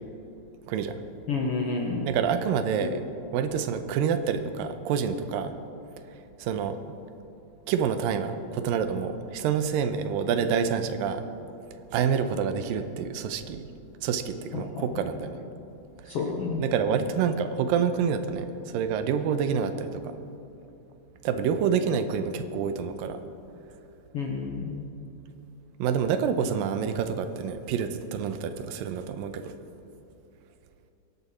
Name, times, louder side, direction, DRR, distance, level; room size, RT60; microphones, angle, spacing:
voice 1, 1.3-2.1 14.5-14.9 16.0-16.6 24.1-24.8, left 4 dB, 65° left, -1 dB, 1.5 m, -30 dB
voice 2, 2.0-3.0 3.3-5.5 6.4-6.8 7.7-11.3 11.9-13.7 14.0-15.4 16.1-16.2 16.6-20.2 21.2-23.2 25.8-29.5, right 7 dB, 80° right, 9 dB, 2.4 m, -27 dB
23.5 x 11.0 x 4.3 m, 2.8 s
omnidirectional pair, 4.2 m